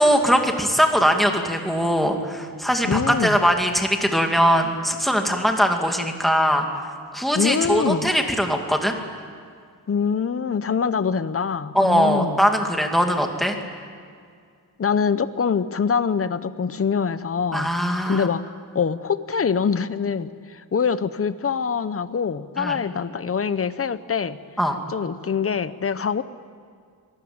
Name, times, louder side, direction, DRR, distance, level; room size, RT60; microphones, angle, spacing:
voice 1, 0.0-6.9 7.1-9.0 11.7-13.6 17.5-18.3 22.6-22.8 24.6-24.8, equal, ahead, 3 dB, 2.3 m, -21 dB
voice 2, 2.8-3.4 7.3-8.1 9.9-12.4 14.8-17.7 18.1-18.4 18.7-24.4 24.9-26.2, left 6 dB, 35° left, 14 dB, 0.8 m, -24 dB
26.0 x 18.5 x 8.8 m, 2.1 s
wide cardioid pair, 145°, 38 cm